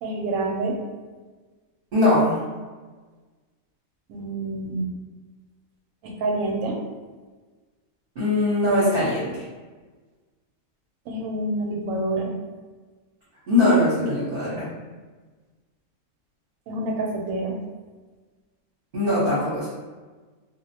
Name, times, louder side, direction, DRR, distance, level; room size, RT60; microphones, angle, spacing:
voice 1, 0.0-0.8 4.1-4.9 6.0-6.8 11.1-12.3 16.7-17.5, right 2 dB, 80° right, 0 dB, 1.0 m, -27 dB
voice 2, 1.9-2.4 8.1-9.4 13.5-14.7 18.9-19.7, left 1 dB, 45° right, -10 dB, 0.9 m, -21 dB
2.4 x 2.1 x 2.7 m, 1.3 s
omnidirectional pair, 1.5 m